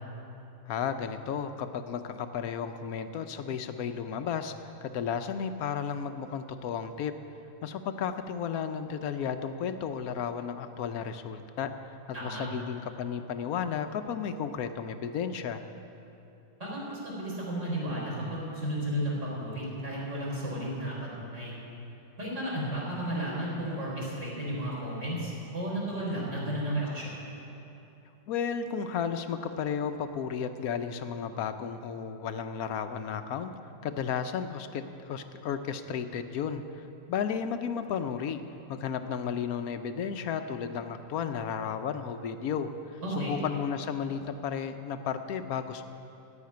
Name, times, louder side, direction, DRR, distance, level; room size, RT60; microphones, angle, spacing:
voice 1, 0.7-7.1 7.6-15.6 28.3-33.5 33.8-38.4 38.7-45.8, left 7 dB, 65° left, 9 dB, 1.0 m, -33 dB
voice 2, 12.1-12.5 16.6-21.5 22.2-27.1 43.0-43.4, right 1 dB, 40° right, -6 dB, 4.4 m, -33 dB
17.0 x 5.8 x 9.4 m, 2.9 s
omnidirectional pair, 1.9 m